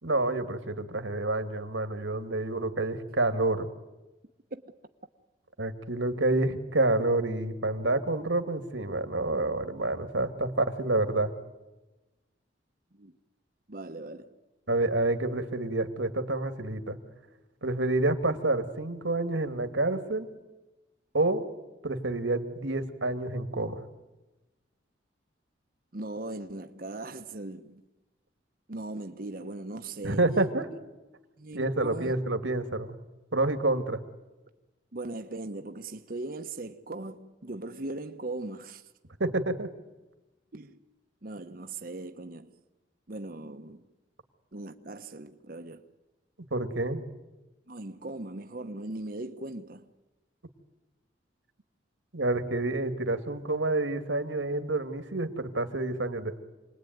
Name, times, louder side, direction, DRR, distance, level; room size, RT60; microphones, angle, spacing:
voice 1, 0.0-3.7 5.6-11.3 14.7-17.0 17.6-20.3 21.1-21.5 21.8-23.8 30.0-30.7 31.5-32.9 33.3-34.0 39.2-39.7 46.5-47.0 52.1-56.4, right 2 dB, 90° right, 2.1 m, -28 dB
voice 2, 13.7-14.3 25.9-27.8 28.7-30.2 31.4-32.1 34.9-38.8 40.5-40.8 41.2-42.5 43.1-43.9 44.5-45.8 47.7-49.9, right 2 dB, 50° right, 1.0 m, -39 dB
28.0 x 20.5 x 9.4 m
head